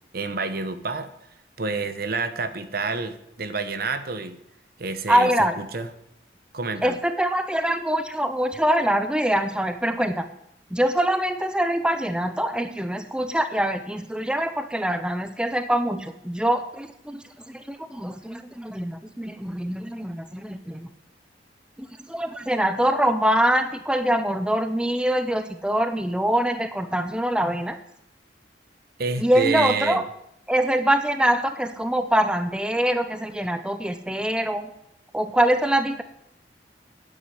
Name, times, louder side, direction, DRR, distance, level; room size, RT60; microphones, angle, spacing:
voice 1, 0.1-1.1 1.6-4.4 4.8-5.3 5.6-5.9 6.5-7.0 29.0-30.1, right 4 dB, 55° right, 11 dB, 1.0 m, -28 dB
voice 2, 5.1-5.6 6.8-10.3 10.7-17.2 17.5-20.9 21.8-27.8 29.2-30.0 30.5-34.7 35.1-36.0, right 1 dB, 5° right, 9 dB, 0.6 m, -24 dB
9.5 x 8.4 x 9.4 m, 0.77 s
head